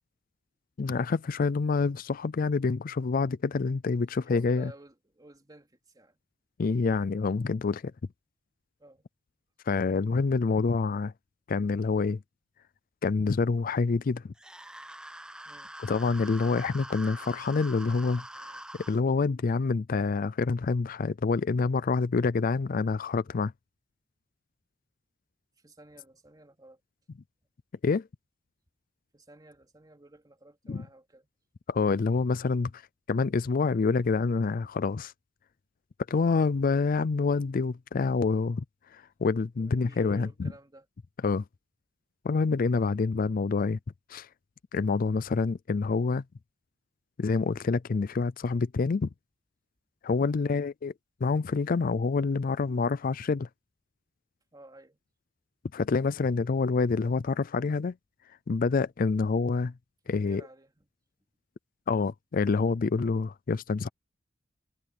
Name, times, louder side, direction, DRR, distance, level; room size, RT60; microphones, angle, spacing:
voice 1, 0.8-4.7 6.6-7.9 9.7-11.1 11.5-12.2 13.0-14.2 15.8-18.6 18.9-23.5 27.8-28.1 30.7-30.9 31.7-32.8 33.1-35.1 36.1-38.6 38.9-40.5 41.2-41.4 42.2-43.8 44.1-44.3 44.7-46.2 47.2-49.1 50.0-50.9 51.2-53.5 55.7-57.9 58.5-59.7 60.1-60.4 61.9-63.9, left 4 dB, 50° left, 0.4 m, -27 dB
voice 2, 4.2-6.2 8.8-9.1 15.5-15.7 25.6-26.8 29.1-31.3 39.6-40.9 42.9-43.0 50.2-50.3 54.5-55.0 60.0-60.9, right 1 dB, 20° right, 3.6 m, -53 dB
sound 1, 14.4-19.0, right 1 dB, 5° right, 0.5 m, -44 dB
head